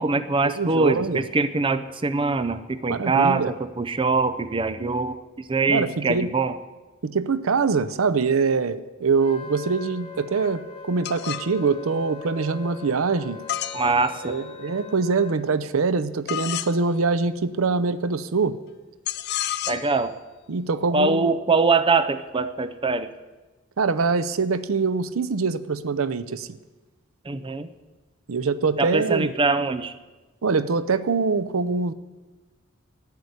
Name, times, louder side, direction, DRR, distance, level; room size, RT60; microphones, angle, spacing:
voice 1, 0.0-6.5 13.7-14.4 19.7-20.1 20.9-23.1 27.2-27.7 28.8-29.9, right 3 dB, 25° right, 12 dB, 0.5 m, -23 dB
voice 2, 0.6-1.2 2.9-3.5 5.7-6.3 7.0-13.4 14.2-18.6 20.5-21.3 23.8-26.5 28.3-29.3 30.4-31.9, right 4 dB, 90° right, 15 dB, 0.6 m, -24 dB
Wind instrument woodwind instrument, 9.2-15.4, left 4 dB, 25° left, 1.5 m, -41 dB
sound 1, 11.0-11.5 13.5-14.5 16.3-16.7 19.1-20.0, left 12 dB, 55° left, 0.5 m, -30 dB
11.5 x 9.7 x 8.0 m, 1.2 s
head